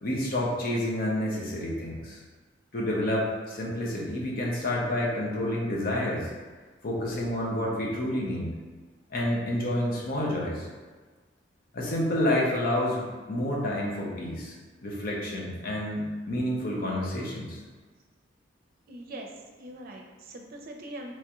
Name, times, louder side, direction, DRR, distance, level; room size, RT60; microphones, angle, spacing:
voice 1, 0.0-2.2 2.7-6.3 6.8-8.5 9.1-10.7 11.7-14.5 14.8-17.6, left 1 dB, 50° left, -3 dB, 0.8 m, -29 dB
voice 2, 18.9-19.3 19.6-21.1, right 1 dB, 50° right, 1 dB, 0.6 m, -42 dB
3.5 x 3.1 x 3.0 m, 1.4 s
head